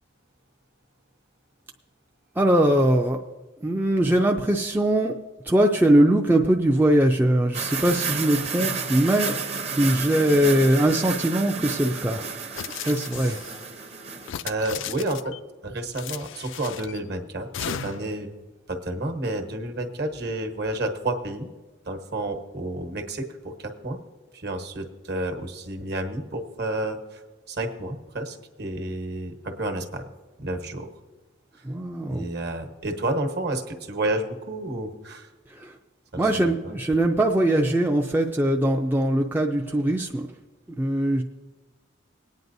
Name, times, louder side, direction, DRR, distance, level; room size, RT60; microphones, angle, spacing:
voice 1, 2.4-3.2 3.6-5.2 5.4-9.4 9.7-12.4 12.9-13.4 14.3-14.5 31.6-32.3 35.5-35.8 36.2-40.3 40.8-41.2, right 1 dB, 10° right, 1 dB, 0.4 m, -21 dB
sound 1, 7.5-14.3, right 5 dB, 30° right, 0.8 m, -31 dB
sound 2, 12.5-13.6 14.2-15.4 15.9-17.0 17.5-18.2, left 9 dB, 65° left, 0.4 m, -35 dB
voice 2, 14.4-15.3 15.6-18.3 18.7-21.5 21.8-24.0 24.3-27.2 27.5-30.1 30.4-30.9 31.5-31.7 32.1-35.3 36.1-36.7, right 1 dB, 50° right, 5 dB, 1.2 m, -30 dB
20.5 x 9.3 x 2.7 m, 1.2 s
head